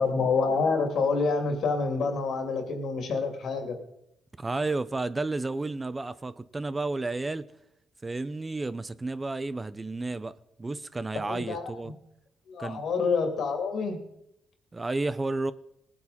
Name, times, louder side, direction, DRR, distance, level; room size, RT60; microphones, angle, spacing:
voice 1, 0.0-3.8 11.2-11.7 12.5-14.0, left 4 dB, 65° left, 2.7 m, -27 dB
voice 2, 4.4-7.5 8.0-11.9 12.6-12.8 14.7-15.5, right 3 dB, 20° right, 0.5 m, -32 dB
18.5 x 8.6 x 4.2 m
cardioid pair, 90°, 0 cm